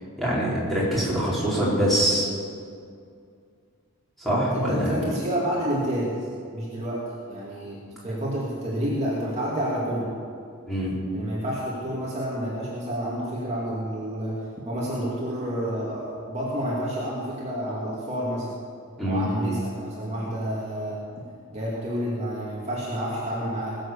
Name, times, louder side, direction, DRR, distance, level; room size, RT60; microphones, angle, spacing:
voice 1, 0.2-2.3 4.2-4.9 10.7-11.0 19.0-19.2, equal, ahead, -9 dB, 4.6 m, -24 dB
voice 2, 4.4-10.1 11.1-18.6 19.0-21.0 21.5-23.8, equal, 30° right, -6 dB, 2.5 m, -29 dB
20.0 x 7.9 x 7.2 m, 2.3 s
head